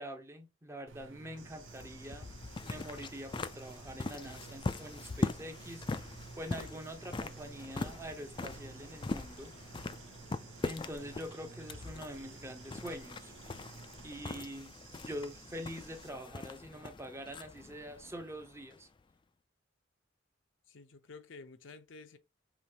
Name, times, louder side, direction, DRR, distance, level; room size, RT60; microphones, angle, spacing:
voice 1, 0.0-2.3 2.6-6.1 6.4-9.5 10.6-13.3 14.0-14.7 15.1-18.9, equal, 15° right, 0.6 m, -45 dB
sound 1, 0.9-14.4, right 4 dB, 90° right, 0.7 m, -54 dB
sound 2, 1.3-19.0, left 3 dB, 25° left, 0.3 m, -42 dB
Bird / Insect, 1.4-16.1, right 5 dB, 75° right, 1.1 m, -57 dB
voice 2, 20.7-22.2, left 4 dB, 75° left, 0.6 m, -51 dB
5.0 x 3.1 x 2.8 m
head